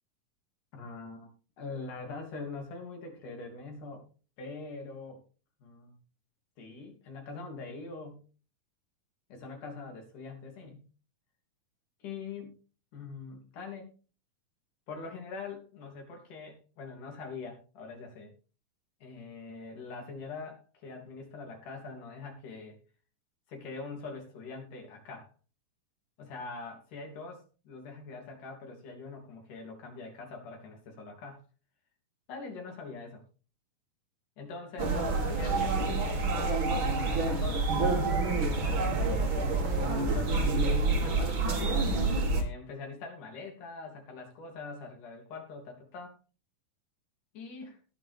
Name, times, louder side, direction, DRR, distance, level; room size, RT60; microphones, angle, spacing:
voice 1, 0.7-1.3 1.6-4.1 4.4-5.2 5.6-6.0 6.6-8.2 9.3-10.9 12.0-12.5 12.9-13.9 14.9-18.3 19.0-22.8 23.5-25.3 26.2-31.4 32.3-33.2 34.4-36.4 37.0-37.7 38.4-40.5 41.0-41.5 42.4-46.2 47.3-47.8, left 4 dB, 65° left, 2 dB, 4.6 m, -43 dB
sound 1, 34.8-42.4, right 3 dB, 40° right, 2.4 m, -28 dB
19.0 x 6.8 x 3.6 m, 0.36 s
omnidirectional pair, 3.9 m